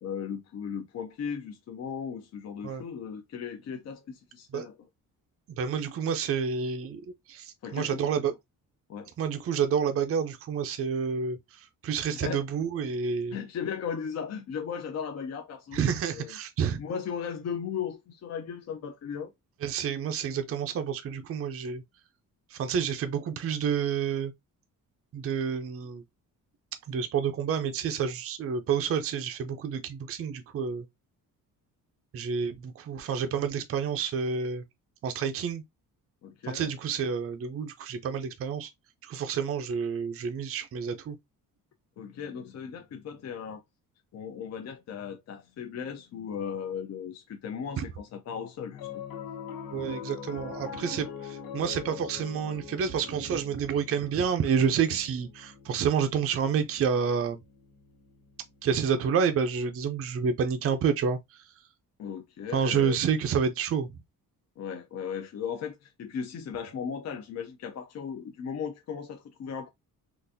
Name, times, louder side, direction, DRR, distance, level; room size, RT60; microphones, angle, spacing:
voice 1, 0.0-4.8 7.6-8.0 8.9-9.1 12.2-12.4 13.3-15.8 16.1-16.4 16.8-19.3 36.2-36.7 42.0-43.6 44.1-48.9 62.0-63.0 64.6-69.7, left 7 dB, 50° left, 0.5 m, -36 dB
voice 2, 5.6-7.0 7.3-8.3 9.2-13.4 15.7-16.8 19.6-21.8 22.5-24.3 25.1-26.0 26.9-30.8 32.1-34.6 35.0-35.6 36.5-38.7 39.0-41.2 47.8-47.9 49.7-57.4 58.6-61.4 62.5-63.9, right 7 dB, 40° right, 0.5 m, -29 dB
Piano, 48.7-59.2, left 8 dB, 90° left, 0.9 m, -43 dB
3.8 x 2.5 x 2.6 m
wide cardioid pair, 165°, 34 cm